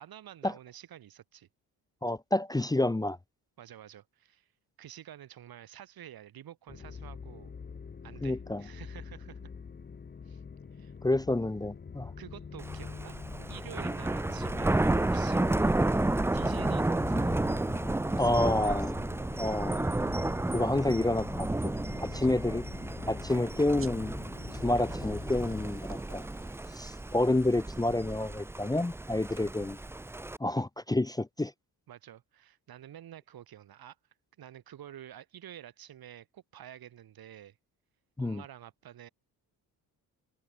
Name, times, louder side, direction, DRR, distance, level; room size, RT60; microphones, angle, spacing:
voice 1, 0.0-1.5 3.6-4.5 4.8-7.5 8.0-9.5 10.3-10.4 10.7-10.9 12.2-15.8 16.3-17.5 18.1-18.8 22.1-22.4 31.9-34.0 34.4-37.6 38.2-39.1, right 11 dB, 65° right, 3.7 m, -49 dB
voice 2, 2.0-3.2 8.2-8.6 11.0-12.1 18.2-18.9 19.4-19.9 20.5-21.7 22.0-22.6 23.1-24.2 24.6-26.3 26.7-29.8 30.4-31.5 38.2-38.4, left 2 dB, 10° left, 0.9 m, -29 dB
sound 1, 6.7-25.7, left 5 dB, 25° left, 1.2 m, -44 dB
Thunder, 12.6-30.4, right 2 dB, 5° right, 0.5 m, -32 dB
sound 2, 23.7-28.8, right 5 dB, 35° right, 4.9 m, -57 dB
cardioid pair, 125°, 39 cm